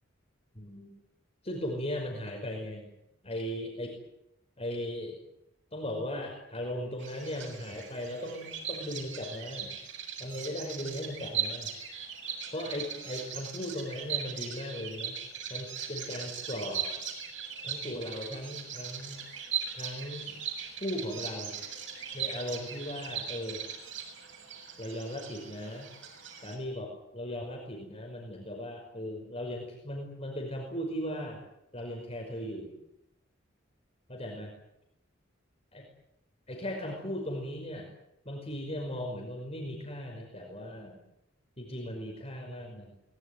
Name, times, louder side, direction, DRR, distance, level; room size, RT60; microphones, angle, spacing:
voice 1, 0.6-1.0 1.4-2.9 3.2-3.9 4.6-5.2 5.7-9.7 10.2-11.7 12.5-15.1 15.5-16.9 17.6-19.2 19.7-20.4 20.8-21.6 22.1-23.6 24.8-25.9 26.4-31.4 31.7-32.7 34.1-34.5 35.7-35.8 36.5-37.9 38.3-41.0 41.6-42.9, left 1 dB, 30° left, 1 dB, 5.4 m, -37 dB
Bird vocalization bird call bird song, 7.0-26.6, right 7 dB, 65° right, 7.2 m, -39 dB
24.0 x 21.0 x 9.8 m, 0.84 s
head